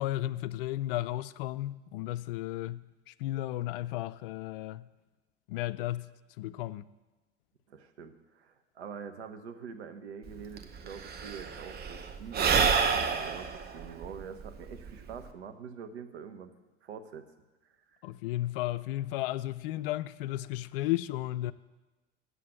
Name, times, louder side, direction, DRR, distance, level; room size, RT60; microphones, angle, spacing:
voice 1, 0.0-4.8 5.5-6.1 6.4-6.8 18.0-21.5, left 15 dB, 55° left, 0.4 m, -34 dB
voice 2, 7.7-16.5 16.8-17.3, right 6 dB, 70° right, 1.0 m, -45 dB
Sigh / Breathing, 10.3-10.4 10.6-15.3, right 6 dB, 30° right, 0.8 m, -29 dB
8.3 x 7.6 x 7.8 m
figure-of-eight pair, 75°, 34 cm